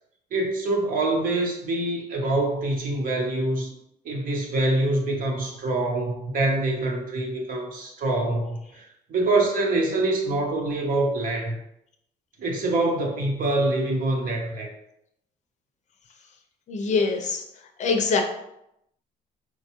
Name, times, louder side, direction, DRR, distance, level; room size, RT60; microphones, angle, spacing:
voice 1, 0.3-3.7 4.0-11.6 12.4-14.7, right 2 dB, 55° right, 1 dB, 0.9 m, -25 dB
voice 2, 16.7-17.4 17.8-18.2, left 4 dB, 45° left, 4 dB, 0.6 m, -23 dB
4.4 x 2.3 x 2.9 m, 0.80 s
cardioid pair, 110°, 17 cm